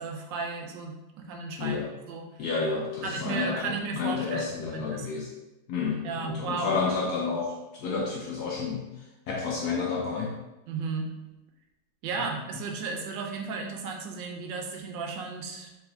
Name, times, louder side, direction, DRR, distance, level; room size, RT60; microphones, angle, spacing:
voice 1, 0.0-2.2 3.0-5.1 6.0-6.8 10.7-11.1 12.0-15.7, right 4 dB, 80° right, 2 dB, 1.3 m, -34 dB
voice 2, 2.4-5.3 5.7-8.9 9.3-10.4, left 5 dB, 70° left, -1 dB, 1.0 m, -30 dB
4.7 x 3.6 x 2.6 m, 1.0 s
omnidirectional pair, 2.0 m